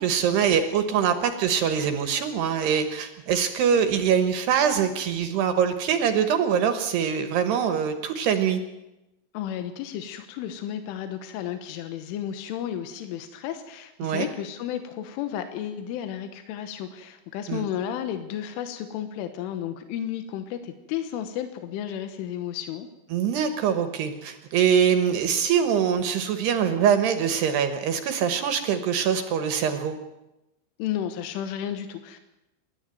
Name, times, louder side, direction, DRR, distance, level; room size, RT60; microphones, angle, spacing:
voice 1, 0.0-8.6 14.0-14.3 17.5-17.7 23.1-30.0, right 7 dB, 70° right, 8 dB, 3.0 m, -23 dB
voice 2, 9.3-22.9 30.8-32.2, left 10 dB, 85° left, 8 dB, 3.7 m, -33 dB
27.5 x 12.0 x 9.2 m, 0.96 s
omnidirectional pair, 5.5 m